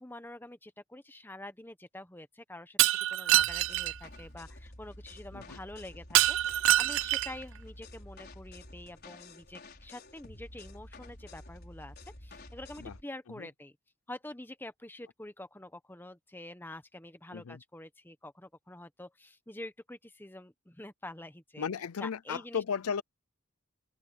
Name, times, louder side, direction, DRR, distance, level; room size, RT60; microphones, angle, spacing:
voice 1, 0.0-13.7 14.1-21.7 22.0-22.6, left 1 dB, 10° left, 1.0 m, -47 dB
Shatter, 2.8-3.9 6.1-7.4, right 14 dB, 60° right, 0.3 m, -25 dB
sound 1, 3.3-13.0, left 1 dB, 45° left, 5.2 m, -50 dB
voice 2, 21.6-23.0, left 6 dB, 90° left, 0.5 m, -35 dB
open air
head